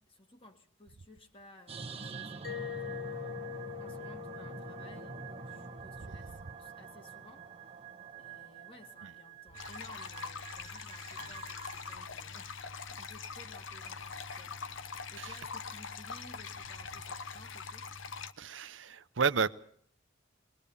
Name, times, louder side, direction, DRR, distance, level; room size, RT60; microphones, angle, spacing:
voice 1, 0.0-3.4 3.8-7.8 8.2-12.6 12.9-17.9, left 1 dB, 30° left, 2.1 m, -57 dB
sound 1, 1.7-12.0, right 4 dB, 30° right, 1.2 m, -46 dB
Mallet percussion, 2.4-7.1, left 11 dB, 50° left, 1.0 m, -44 dB
sound 2, 9.5-18.3, left 5 dB, 80° left, 1.0 m, -43 dB
voice 2, 18.4-19.5, right 5 dB, 75° right, 0.8 m, -31 dB
22.0 x 20.0 x 7.0 m
head